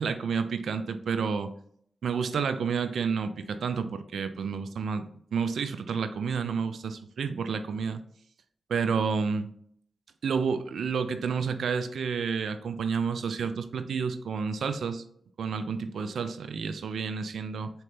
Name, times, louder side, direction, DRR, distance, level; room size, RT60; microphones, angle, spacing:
voice 1, 0.0-1.5 2.0-5.1 5.3-8.0 8.7-9.5 10.2-15.0 15.4-17.7, right 5 dB, 80° right, 10 dB, 0.3 m, -30 dB
4.2 x 2.8 x 3.3 m, 0.65 s
supercardioid pair, 40°, 0 cm